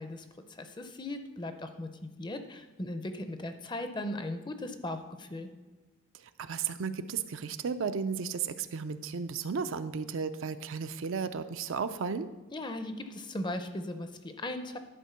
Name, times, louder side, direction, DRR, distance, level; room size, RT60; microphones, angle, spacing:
voice 1, 0.0-5.5 12.5-14.8, left 1 dB, 20° left, 8 dB, 0.5 m, -38 dB
voice 2, 6.2-12.3, right 6 dB, 70° right, 10 dB, 0.4 m, -34 dB
11.0 x 4.3 x 5.7 m, 1.3 s
head